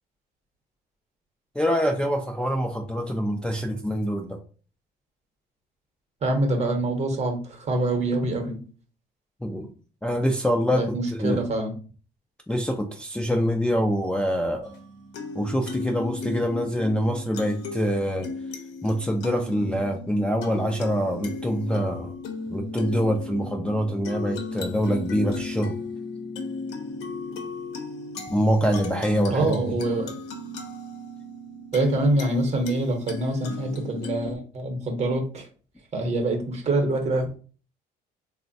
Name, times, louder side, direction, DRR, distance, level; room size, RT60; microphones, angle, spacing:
voice 1, 1.6-4.4 9.4-9.7 10.0-10.9 11.2-11.4 12.5-14.7 15.4-18.3 18.8-22.1 22.5-25.7 28.3-29.6, equal, 5° left, 0 dB, 0.3 m, -25 dB
voice 2, 6.2-8.6 10.7-11.7 29.3-30.2 31.7-35.5 35.9-37.3, right 2 dB, 40° right, 3 dB, 0.8 m, -25 dB
sound 1, 14.6-34.3, left 3 dB, 85° left, 0.7 m, -36 dB
3.2 x 2.0 x 2.6 m, 0.39 s
cardioid pair, 110°, 17 cm